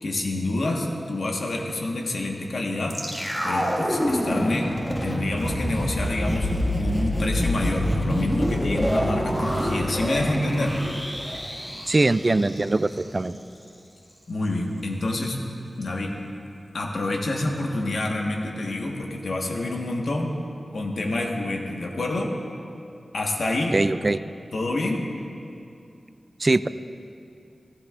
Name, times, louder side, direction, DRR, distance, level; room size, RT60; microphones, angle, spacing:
voice 1, 0.0-3.0 3.4-10.8 14.3-15.4 15.8-16.1 16.7-20.3 20.7-22.3 23.1-23.8 24.5-25.0, left 2 dB, 75° left, 0 dB, 1.3 m, -27 dB
sound 1, 2.9-13.0 13.3-13.4, equal, 15° left, 1.8 m, -27 dB
sound 2, 8.5-12.2, right 1 dB, 60° right, 1.6 m, -36 dB
voice 2, 11.9-13.4 23.7-24.2 26.4-26.7, right 2 dB, 35° right, 13 dB, 0.3 m, -22 dB
15.5 x 15.0 x 2.5 m, 2.5 s
wide cardioid pair, 80°, 0 cm